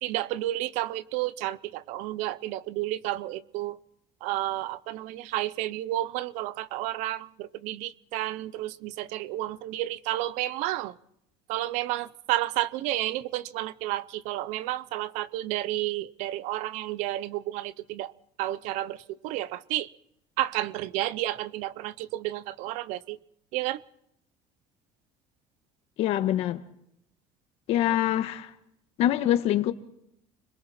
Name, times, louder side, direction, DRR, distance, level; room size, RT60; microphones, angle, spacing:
voice 1, 0.0-3.8 4.2-11.0 11.5-18.1 18.4-19.9 20.4-23.2 23.5-23.8 27.9-28.0, right 15 dB, 75° right, 0.8 m, -31 dB
voice 2, 26.0-26.6 27.7-28.5 29.0-29.7, left 12 dB, 55° left, 1.5 m, -24 dB
30.0 x 21.5 x 4.3 m
cardioid pair, 165°, 13 cm